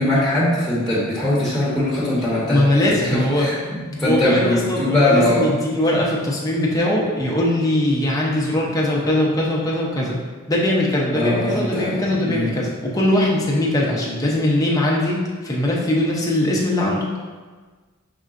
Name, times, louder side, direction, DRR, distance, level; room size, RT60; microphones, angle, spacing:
voice 1, 0.0-5.5 11.1-12.0 12.2-12.6, left 1 dB, ahead, -9 dB, 1.1 m, -21 dB
voice 2, 2.5-3.5 4.0-10.2 10.5-17.0, left 1 dB, 15° left, -3 dB, 0.7 m, -21 dB
5.3 x 3.7 x 2.5 m, 1.4 s
head